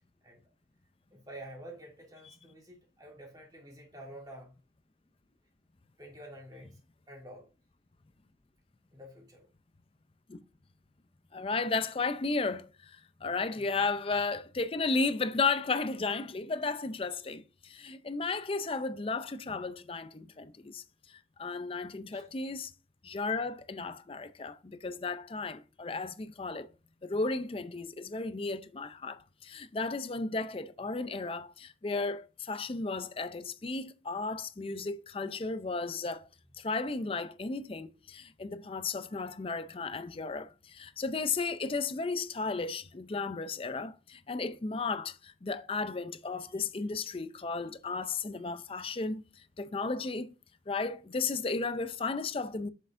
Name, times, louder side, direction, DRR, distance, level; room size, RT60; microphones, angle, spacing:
voice 1, 1.1-4.6 6.0-6.8 7.1-7.5 8.9-9.5 13.4-13.6 22.1-22.3 46.6-46.7 47.9-48.0 48.3-48.5 48.8-48.9, right 1 dB, 20° right, 2.5 m, -49 dB
voice 2, 11.3-22.7 23.0-26.7 27.0-36.3 36.6-50.3 50.7-52.7, left 4 dB, 30° left, 0.5 m, -34 dB
7.8 x 6.4 x 2.6 m
head